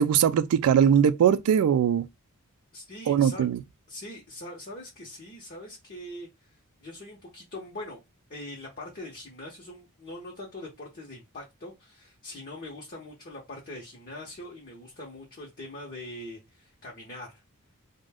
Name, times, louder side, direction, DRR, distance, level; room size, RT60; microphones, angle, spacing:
voice 1, 0.0-2.1 3.1-3.6, right 8 dB, 80° right, 0.3 m, -21 dB
voice 2, 2.7-3.5 3.9-8.0 8.3-17.4, left 1 dB, 40° left, 0.8 m, -42 dB
2.5 x 2.1 x 3.3 m
head